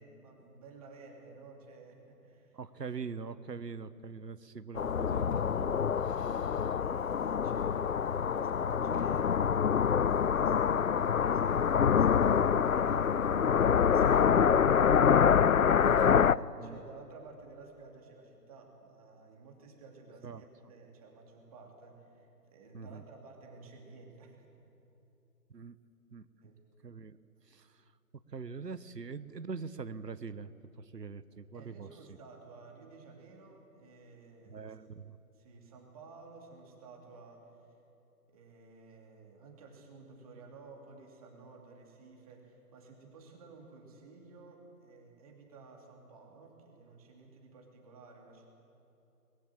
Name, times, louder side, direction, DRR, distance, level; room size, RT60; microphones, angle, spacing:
voice 1, 0.0-2.6 6.1-13.5 13.8-24.5 26.4-26.6 31.5-34.8 35.3-37.7 38.3-48.5, right 3 dB, 20° right, 0 dB, 2.7 m, -53 dB
voice 2, 2.5-6.7 13.3-13.7 15.8-16.8 20.2-20.4 22.7-23.0 25.5-25.8 26.1-26.3 26.8-27.2 27.5-27.8 28.3-30.5 30.8-32.2 34.5-35.2, right 5 dB, 75° right, 14 dB, 1.2 m, -44 dB
sound 1, 4.8-16.3, left 7 dB, 55° left, 0.5 m, -26 dB
24.0 x 21.0 x 7.5 m, 2.9 s
figure-of-eight pair, 150°, 49 cm